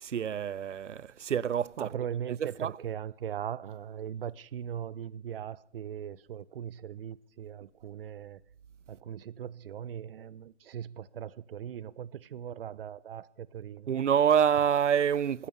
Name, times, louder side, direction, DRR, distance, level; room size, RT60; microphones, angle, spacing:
voice 1, 0.0-1.9 2.4-2.7 13.9-15.5, right 8 dB, 90° right, 0.5 m, -27 dB
voice 2, 1.8-8.4 8.9-13.9, right 9 dB, 55° right, 0.7 m, -39 dB
15.5 x 13.0 x 6.9 m
figure-of-eight pair, 135°, 35 cm